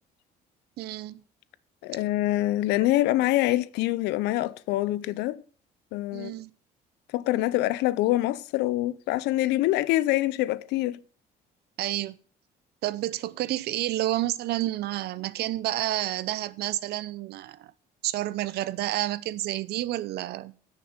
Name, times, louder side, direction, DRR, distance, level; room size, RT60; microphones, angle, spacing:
voice 1, 0.8-1.2 6.1-6.5 11.8-12.2 12.8-17.7 18.0-20.5, right 15 dB, 75° right, 0.7 m, -30 dB
voice 2, 1.8-5.4 5.9-6.4 7.1-11.0, left 16 dB, 90° left, 0.6 m, -25 dB
9.6 x 6.7 x 8.0 m
cardioid pair, 110°, 17 cm